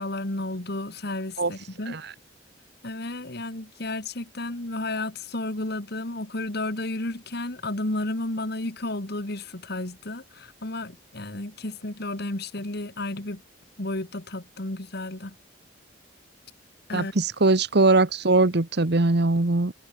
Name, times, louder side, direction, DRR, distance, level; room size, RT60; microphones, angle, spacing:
voice 1, 0.0-2.0 2.8-13.4 13.8-15.3 16.9-17.1, left 2 dB, 55° left, 2.4 m, -32 dB
voice 2, 16.9-19.7, right 2 dB, 60° right, 1.2 m, -21 dB
head